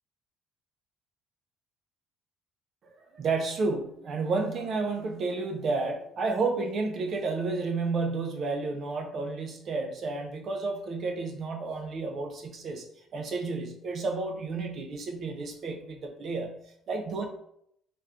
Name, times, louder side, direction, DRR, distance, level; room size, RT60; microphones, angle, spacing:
voice 1, 2.8-12.9 13.1-16.6 16.9-17.3, right 3 dB, 35° right, 4 dB, 0.3 m, -31 dB
3.3 x 3.0 x 2.4 m, 0.71 s
cardioid pair, 175°, 0 cm